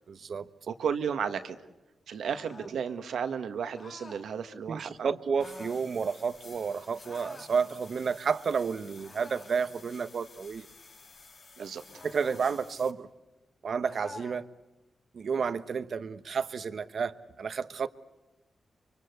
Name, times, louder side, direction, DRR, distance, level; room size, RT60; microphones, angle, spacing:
voice 1, 0.1-0.5 4.7-10.7 11.6-11.7 12.0-13.1 13.6-14.5 15.1-17.9, right 6 dB, 65° right, 13 dB, 1.1 m, -31 dB
voice 2, 0.7-1.6 2.1-5.2 11.6-12.0, right 7 dB, 80° right, 9 dB, 1.6 m, -34 dB
sound 1, 2.2-2.8 3.7-4.3 5.3-5.8 7.0-7.6 9.0-9.6 11.9-12.5 13.8-14.5, left 2 dB, 40° left, 2.9 m, -49 dB
sound 2, 5.4-12.9, left 4 dB, 60° left, 5.3 m, -53 dB
25.0 x 24.5 x 8.0 m, 1.0 s
cardioid pair, 55°, 0 cm